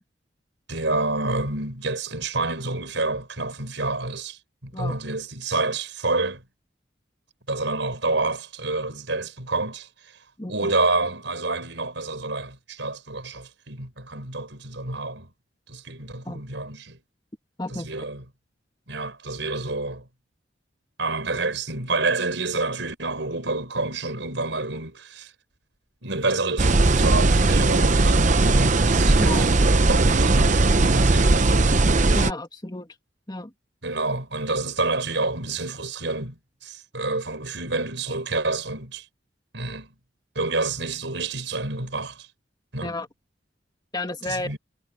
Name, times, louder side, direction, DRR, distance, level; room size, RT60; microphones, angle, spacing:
voice 1, 0.7-6.4 7.5-10.2 10.5-15.3 15.7-17.0 17.7-18.2 18.9-20.1 21.0-25.3 26.0-31.7 33.8-39.1 39.5-39.9 40.4-42.3 42.7-42.9 44.3-44.6, right 3 dB, 75° right, 5.5 m, -28 dB
voice 2, 10.4-10.7 16.3-16.4 17.6-17.9 29.2-29.5 32.1-33.0 33.3-33.5 42.8-43.1 43.9-44.6, left 2 dB, 25° left, 2.0 m, -31 dB
sound 1, 26.6-32.3, right 2 dB, 40° right, 0.8 m, -18 dB
head